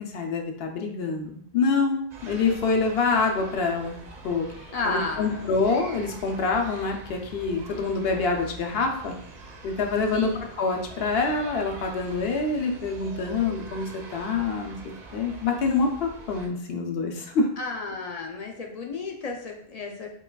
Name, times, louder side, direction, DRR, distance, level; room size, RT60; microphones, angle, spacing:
voice 1, 0.0-4.0 4.2-4.5 4.8-9.1 9.6-10.3 10.6-14.8 15.1-17.5, left 4 dB, 75° left, 3 dB, 0.8 m, -26 dB
sound 1, 2.1-16.5, right 2 dB, 50° right, 0.6 m, -44 dB
voice 2, 4.7-5.4 10.1-10.4 17.6-20.1, left 3 dB, 50° left, 1 dB, 0.5 m, -32 dB
5.3 x 2.3 x 2.2 m, 0.65 s
omnidirectional pair, 1.0 m